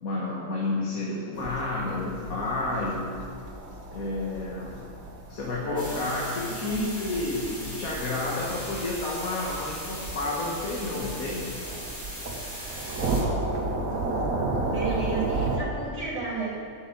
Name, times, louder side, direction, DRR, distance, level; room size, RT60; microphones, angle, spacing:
voice 1, 0.0-3.1 3.9-4.9 5.3-11.6, left 2 dB, 85° left, -5 dB, 1.9 m, -30 dB
sound 1, 1.3-15.6, right 2 dB, 80° right, 1.8 m, -33 dB
voice 2, 5.6-5.9 6.4-7.1 14.7-16.6, right 5 dB, 25° right, -7 dB, 2.8 m, -33 dB
sound 2, 5.8-13.2, equal, 5° right, 2.5 m, -39 dB
7.9 x 6.9 x 8.3 m, 2.3 s
omnidirectional pair, 1.4 m